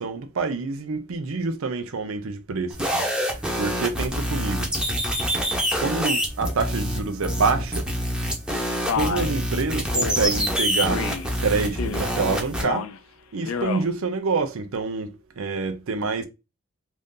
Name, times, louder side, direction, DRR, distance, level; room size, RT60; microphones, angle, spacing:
voice 1, 0.0-3.1 3.6-4.7 5.8-7.9 8.9-11.0 11.4-12.8 13.3-15.1 15.4-16.3, right 4 dB, 80° right, 0.5 m, -27 dB
sound 1, 2.7-12.6, equal, 5° right, 0.7 m, -26 dB
Male speech man speaking, 8.9-9.3 9.9-10.3 10.9-11.3 11.7-12.2 12.6-13.0 13.4-13.9, left 6 dB, 80° left, 0.4 m, -29 dB
2.7 x 2.6 x 3.6 m
head